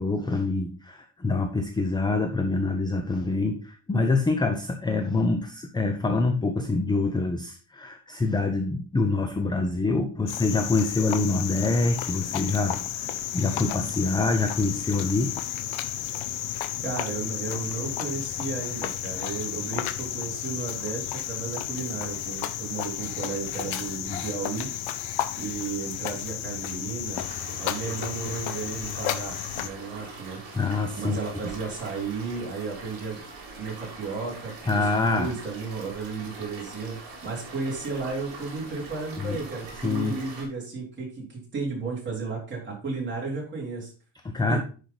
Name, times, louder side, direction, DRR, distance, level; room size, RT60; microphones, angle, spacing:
voice 1, 0.0-15.3 24.1-24.2 30.5-31.2 34.7-35.3 39.2-39.4 39.8-40.2 44.2-44.6, left 3 dB, 10° left, 6 dB, 0.5 m, -26 dB
Cricket, 10.3-29.7, left 11 dB, 85° left, 0.9 m, -32 dB
voice 2, 16.8-24.7 25.4-27.2 27.6-30.4 31.0-33.2 33.6-43.9 44.5-44.6, right 4 dB, 25° right, -4 dB, 3.9 m, -33 dB
sound 1, 27.1-40.5, right 3 dB, 45° right, 3.3 m, -43 dB
10.5 x 4.9 x 4.0 m, 0.37 s
cardioid pair, 165°, 47 cm